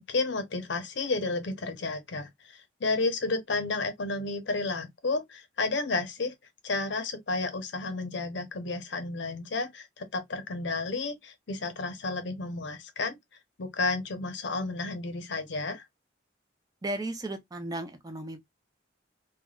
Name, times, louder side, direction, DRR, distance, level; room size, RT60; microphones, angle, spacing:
voice 1, 0.0-6.3 6.6-13.2 13.6-15.9, left 3 dB, 65° left, 0.7 m, -32 dB
voice 2, 16.8-18.4, right 1 dB, 20° right, 0.5 m, -35 dB
3.1 x 2.2 x 2.3 m
head